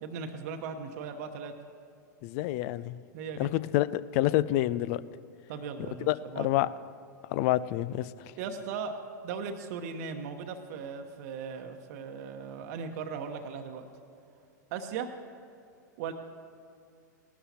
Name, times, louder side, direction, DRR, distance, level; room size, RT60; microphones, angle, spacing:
voice 1, 0.0-1.5 3.1-3.5 5.5-6.6 8.4-13.9 14.7-15.1 16.0-16.1, right 6 dB, 55° right, 5 dB, 1.0 m, -38 dB
voice 2, 2.2-3.0 3.4-5.0 6.1-6.7 7.3-8.1, left 15 dB, 50° left, 17 dB, 0.4 m, -28 dB
18.5 x 12.5 x 2.9 m, 2.6 s
hypercardioid pair, 105°, 10 cm